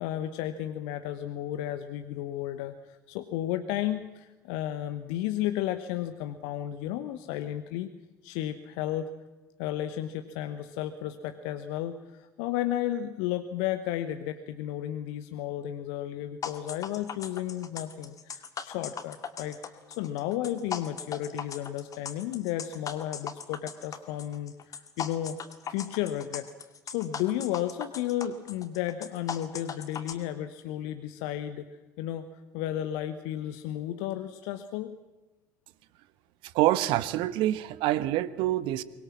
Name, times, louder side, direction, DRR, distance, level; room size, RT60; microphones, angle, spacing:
voice 1, 0.0-7.9 8.2-9.1 9.6-19.6 19.9-25.4 25.7-26.5 26.9-31.7 32.0-32.2 32.5-35.0, left 12 dB, 60° left, 9 dB, 1.2 m, -33 dB
sound 1, 16.4-30.1, left 7 dB, 35° left, 2.3 m, -38 dB
voice 2, 36.5-38.8, right 14 dB, 55° right, 16 dB, 1.1 m, -26 dB
23.5 x 21.5 x 7.5 m, 1.1 s
figure-of-eight pair, 60°, 10 cm